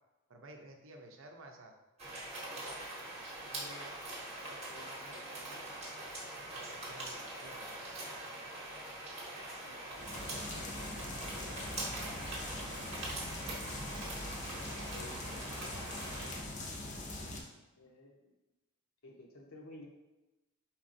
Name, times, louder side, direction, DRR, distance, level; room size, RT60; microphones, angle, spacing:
voice 1, 0.3-1.7 6.4-8.0, right 1 dB, 60° right, 3 dB, 0.6 m, -54 dB
sound 1, 2.0-16.4, right 1 dB, 30° right, 0.9 m, -43 dB
voice 2, 3.4-3.9 4.3-5.7 9.6-11.7 14.6-15.3 17.2-17.4 17.8-18.3 19.0-19.9, left 2 dB, 70° left, 0 dB, 0.8 m, -56 dB
sound 2, 9.9-17.4, left 2 dB, 35° left, 0.5 m, -42 dB
4.4 x 4.1 x 2.5 m, 1.0 s
head